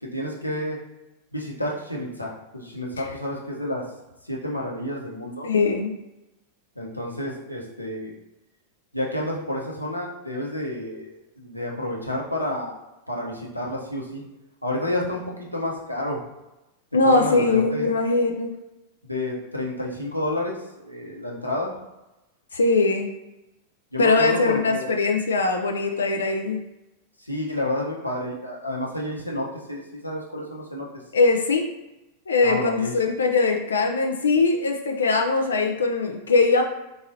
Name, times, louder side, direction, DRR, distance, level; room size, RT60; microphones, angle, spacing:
voice 1, 0.0-0.8 1.3-3.8 4.2-5.5 6.8-8.2 8.9-14.2 14.6-16.2 17.0-17.9 19.0-21.8 23.9-24.9 27.2-31.0 32.4-32.9, left 1 dB, 90° left, -3 dB, 0.9 m, -30 dB
voice 2, 5.4-5.9 16.9-18.5 22.5-23.1 24.0-26.6 31.1-31.7 32.3-36.6, left 3 dB, 70° left, 2 dB, 0.4 m, -21 dB
3.9 x 3.6 x 2.7 m, 0.99 s
figure-of-eight pair, 90°, 0 cm